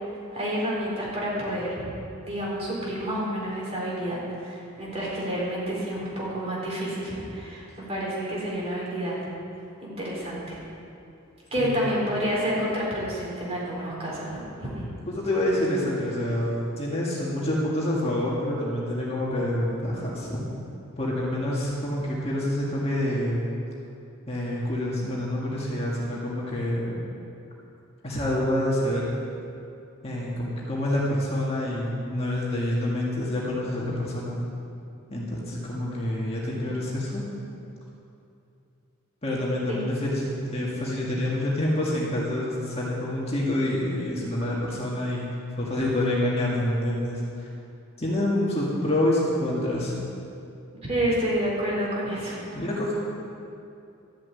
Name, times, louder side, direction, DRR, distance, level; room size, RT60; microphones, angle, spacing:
voice 1, 0.3-1.9 2.2-9.2 9.8-10.6 11.5-14.9 39.7-39.8 50.9-52.6, equal, 30° right, -5 dB, 4.0 m, -29 dB
voice 2, 11.6-11.9 15.1-20.4 21.0-23.4 24.3-27.0 28.0-29.1 30.0-34.4 35.1-37.2 39.2-40.2 40.5-45.3 45.6-47.5 48.0-50.0 52.5-52.9, left 1 dB, 30° left, -5 dB, 2.1 m, -27 dB
13.0 x 7.7 x 8.5 m, 2.6 s
head